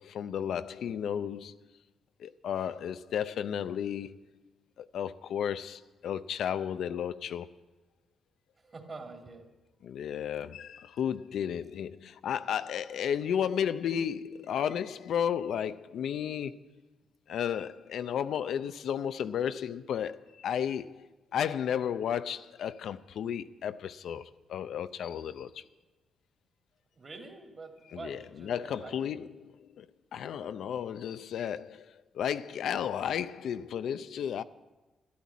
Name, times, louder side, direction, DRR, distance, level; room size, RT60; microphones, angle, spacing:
voice 1, 0.0-1.6 2.2-4.2 4.8-7.5 9.8-16.6 17.3-21.1 21.3-25.6 27.9-29.9 30.1-34.4, left 8 dB, 80° left, 0.5 m, -33 dB
voice 2, 8.6-9.5 26.9-29.0, right 3 dB, 35° right, 2.7 m, -46 dB
13.0 x 12.0 x 8.4 m
cardioid pair, 95°, 0 cm